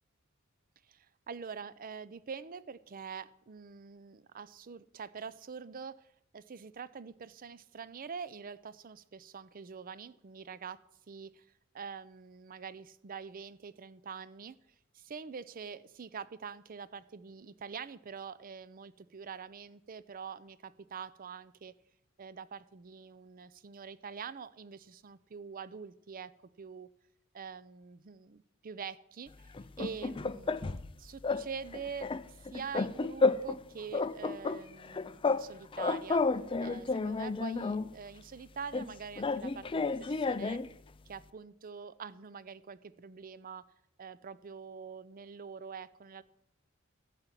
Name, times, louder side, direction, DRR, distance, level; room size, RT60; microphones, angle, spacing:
voice 1, 0.9-10.8 11.1-11.5 11.7-14.6 14.9-21.7 22.2-26.3 26.6-26.9 27.3-36.2 36.6-40.6 41.1-43.7 44.0-46.2, right 6 dB, 40° right, 17 dB, 0.5 m, -45 dB
sound 1, 29.5-30.9 31.2-31.5 31.7-33.6 33.9-35.5 35.7-37.9 38.7-40.7, left 3 dB, 25° left, 0.4 m, -31 dB
13.0 x 5.8 x 9.0 m, 0.77 s
head